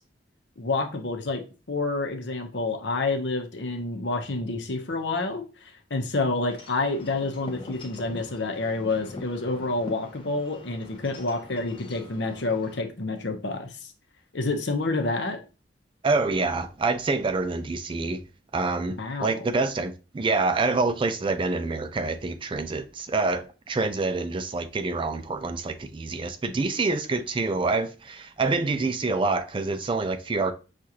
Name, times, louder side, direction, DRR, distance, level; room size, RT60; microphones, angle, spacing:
voice 1, 0.6-1.4 1.7-13.9 14.3-15.4 19.0-19.4, left 3 dB, 70° left, 0.8 m, -28 dB
Wind chime / Wind, 6.5-12.8, left 2 dB, 30° left, 0.7 m, -44 dB
voice 2, 16.0-18.2 18.5-30.5, right 3 dB, 25° right, 0.4 m, -26 dB
6.3 x 2.5 x 2.8 m
head